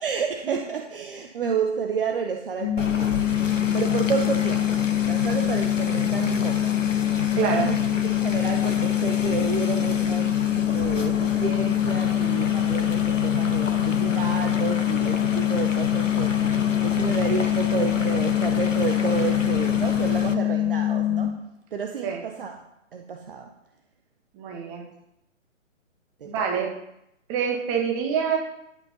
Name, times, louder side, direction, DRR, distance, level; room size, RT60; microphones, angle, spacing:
voice 1, 0.0-3.2 3.7-4.8 5.1-6.7 7.3-10.4 10.7-21.4 21.7-22.6 22.9-23.5 26.2-26.3, right 6 dB, 45° right, 3 dB, 1.3 m, -30 dB
sound 1, 2.6-21.3, left 13 dB, 35° left, 1.6 m, -24 dB
sound 2, 2.8-20.3, left 4 dB, 75° left, 1.4 m, -30 dB
voice 2, 7.4-7.7 22.0-22.2 24.3-24.8 26.2-26.7 27.3-28.4, right 7 dB, 20° right, 0 dB, 2.3 m, -26 dB
12.0 x 8.6 x 5.5 m, 0.82 s
figure-of-eight pair, 130°, 39 cm